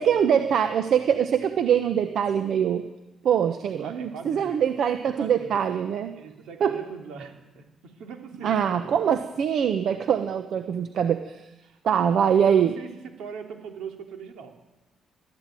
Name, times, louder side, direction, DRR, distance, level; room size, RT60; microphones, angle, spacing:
voice 1, 0.0-2.8 3.2-6.1 6.6-6.7 8.4-11.4 11.8-12.7, right 8 dB, 65° right, 8 dB, 1.2 m, -23 dB
voice 2, 3.8-4.6 5.2-5.6 6.1-8.9 11.6-11.8 12.3-14.5, right 6 dB, 85° right, 3 dB, 3.5 m, -40 dB
21.0 x 13.5 x 9.2 m, 1.0 s
cardioid pair, 90°, 0 cm